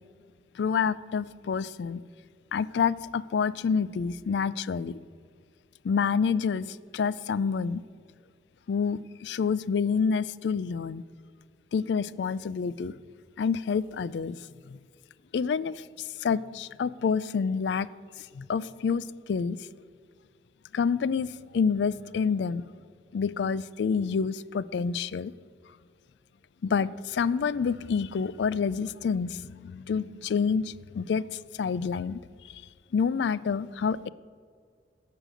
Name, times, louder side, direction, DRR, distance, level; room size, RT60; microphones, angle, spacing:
voice 1, 0.5-2.0 2.5-5.0 5.8-7.8 8.7-11.0 11.7-12.9 13.4-14.8 15.3-17.9 18.2-19.7 20.7-22.7 23.1-25.3 26.6-32.2 32.5-32.6 32.9-34.1, left 6 dB, 75° left, 19 dB, 0.4 m, -28 dB
11.0 x 6.7 x 7.6 m, 2.1 s
head